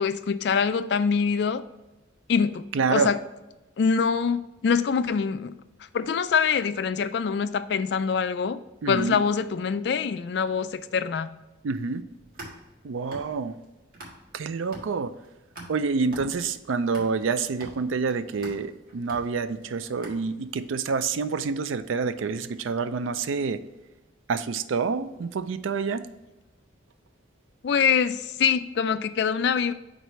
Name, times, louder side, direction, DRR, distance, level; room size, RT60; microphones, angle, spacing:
voice 1, 0.0-1.6 2.3-2.6 2.9-3.2 3.8-5.5 5.9-8.6 8.9-11.3 27.6-29.7, left 6 dB, 60° left, 12 dB, 0.3 m, -24 dB
voice 2, 2.7-3.1 8.8-9.2 11.6-12.0 12.8-13.5 14.3-15.1 15.7-23.6 24.3-26.0, right 5 dB, 90° right, 12 dB, 0.4 m, -27 dB
sound 1, 12.1-14.4 14.7-20.7, right 1 dB, 45° right, 1.6 m, -45 dB
4.7 x 4.0 x 5.5 m, 1.1 s
head